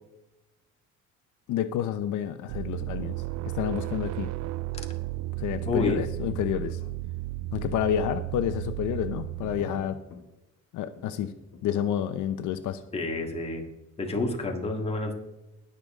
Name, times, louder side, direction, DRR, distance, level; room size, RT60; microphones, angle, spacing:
voice 1, 1.5-3.2 3.5-4.3 5.4-6.8 7.5-10.0 10.7-11.3 11.6-12.8, left 10 dB, 75° left, 10 dB, 0.8 m, -29 dB
sound 1, 2.5-9.9, right 18 dB, 70° right, 0.5 m, -34 dB
voice 2, 5.6-6.0 12.9-13.6 14.0-15.1, left 2 dB, 20° left, 1 dB, 1.9 m, -29 dB
sound 2, 9.2-10.3 11.0-11.1 11.5-13.6, left 3 dB, 60° left, 1.7 m, -49 dB
20.0 x 6.9 x 3.7 m, 0.98 s
cardioid pair, 150°, 30 cm